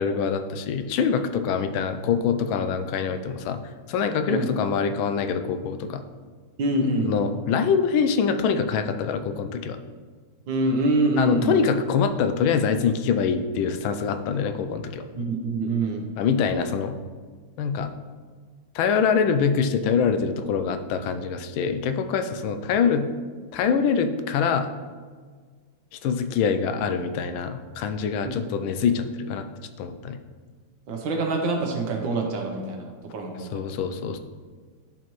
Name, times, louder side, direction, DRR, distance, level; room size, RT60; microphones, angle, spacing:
voice 1, 0.0-3.6 3.9-6.0 7.1-9.8 11.2-15.0 16.2-17.0 17.6-17.9 18.7-23.1 23.5-24.7 25.9-29.4 29.8-30.2 33.5-34.2, left 6 dB, 80° left, 8 dB, 1.4 m, -24 dB
voice 2, 6.6-7.1 10.5-11.6 15.1-16.0 28.2-28.4 30.9-33.8, right 2 dB, 70° right, 2 dB, 1.6 m, -25 dB
10.5 x 4.2 x 3.1 m, 1.6 s
omnidirectional pair, 2.2 m